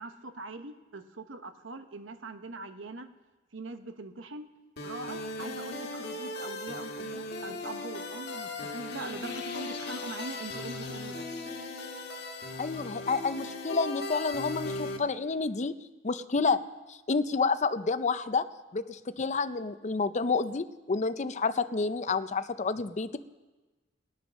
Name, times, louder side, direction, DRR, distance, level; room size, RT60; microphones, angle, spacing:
voice 1, 0.0-3.1 3.5-4.5 4.8-11.2, right 3 dB, 80° right, 8 dB, 1.1 m, -42 dB
sound 1, 4.8-15.0, left 2 dB, 60° left, 1.7 m, -38 dB
voice 2, 12.6-15.7 16.0-16.6 16.9-18.4 18.7-23.1, left 4 dB, 40° left, 12 dB, 0.6 m, -29 dB
20.0 x 9.3 x 6.3 m, 1.2 s
head